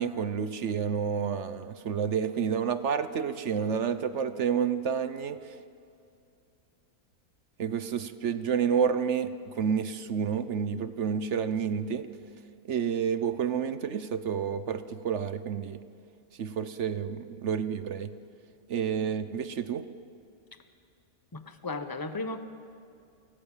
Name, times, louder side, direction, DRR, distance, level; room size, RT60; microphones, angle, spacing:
voice 1, 0.0-5.5 7.6-12.1 12.6-15.8 16.4-18.1 18.7-19.8, right 7 dB, 55° right, 12 dB, 1.0 m, -29 dB
voice 2, 21.3-22.4, left 3 dB, 15° left, 9 dB, 1.0 m, -35 dB
29.5 x 16.5 x 7.3 m, 2.5 s
omnidirectional pair, 1.6 m